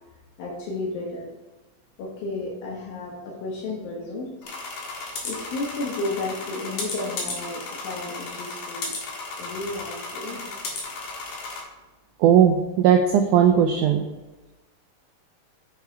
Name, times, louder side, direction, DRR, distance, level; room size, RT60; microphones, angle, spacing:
voice 1, 0.4-1.3 2.0-4.5 4.8-4.9 5.2-8.9 9.4-10.4, left 2 dB, 75° left, -2 dB, 3.0 m, -32 dB
sound 1, 4.4-11.6, left 3 dB, 60° left, 2.8 m, -34 dB
voice 2, 12.2-14.0, right 8 dB, 85° right, 4 dB, 1.8 m, -17 dB
7.3 x 5.8 x 4.6 m, 1.1 s
omnidirectional pair, 4.2 m